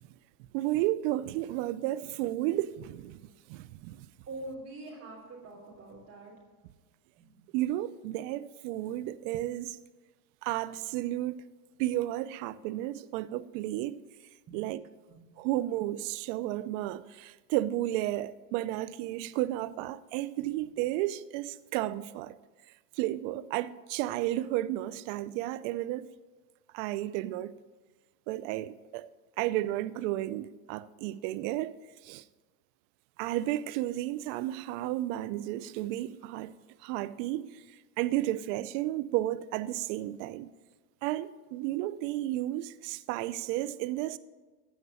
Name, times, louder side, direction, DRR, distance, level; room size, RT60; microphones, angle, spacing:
voice 1, 0.5-3.2 3.5-4.1 7.5-9.8 10.4-11.5 11.8-14.0 14.5-14.8 15.4-22.3 22.9-26.1 26.7-27.5 28.3-29.1 29.4-31.8 32.0-32.2 33.2-36.5 36.8-37.6 38.0-40.5 41.0-44.2, right 15 dB, 55° right, 0.7 m, -32 dB
voice 2, 4.3-6.3 7.2-7.4 14.5-14.7 15.1-15.2, right 2 dB, 35° right, 3.4 m, -44 dB
15.5 x 5.2 x 8.5 m
supercardioid pair, 120°, 45 cm